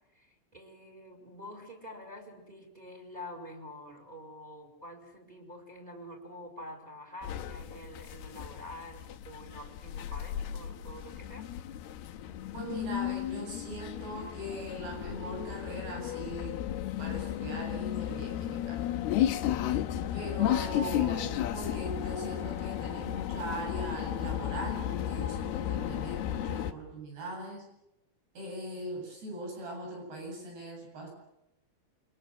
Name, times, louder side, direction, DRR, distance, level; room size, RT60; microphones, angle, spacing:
voice 1, 0.1-11.5, left 1 dB, 10° right, 3 dB, 4.7 m, -47 dB
sound 1, 7.2-26.7, left 11 dB, 75° left, 3.0 m, -34 dB
voice 2, 12.5-16.6 17.0-18.8 20.1-27.7 28.3-31.1, right 1 dB, 70° right, 1 dB, 9.9 m, -40 dB
28.0 x 23.5 x 7.7 m, 0.89 s
omnidirectional pair, 4.9 m